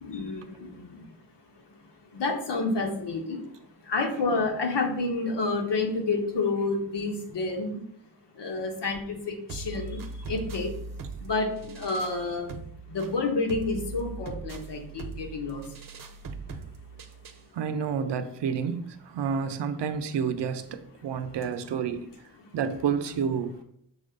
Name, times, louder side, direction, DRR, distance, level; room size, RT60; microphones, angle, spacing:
voice 1, 0.0-1.0 2.1-3.4 3.9-7.7 8.4-10.0 10.3-10.7 11.2-12.5 12.9-15.6, left 3 dB, 80° left, 1.5 m, -29 dB
sound 1, 9.5-17.5, right 3 dB, 55° right, 0.8 m, -40 dB
voice 2, 17.5-22.1 22.5-23.6, right 6 dB, 90° right, 0.7 m, -29 dB
6.3 x 3.7 x 5.2 m
cardioid pair, 85°, 41 cm